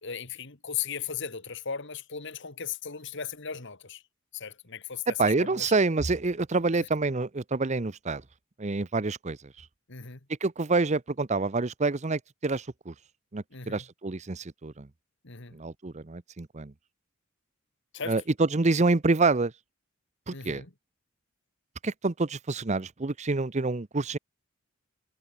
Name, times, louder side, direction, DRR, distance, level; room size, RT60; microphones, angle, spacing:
voice 1, 0.0-4.0 4.3-5.7 9.9-10.2 13.5-13.8 15.2-15.6 17.9-18.2 20.3-20.7, left 7 dB, 60° left, 2.1 m, -37 dB
voice 2, 5.1-8.2 8.6-9.7 10.4-12.9 13.3-14.9 15.5-16.7 18.1-19.5 20.3-20.6 21.8-24.2, right 3 dB, 35° right, 0.7 m, -27 dB
head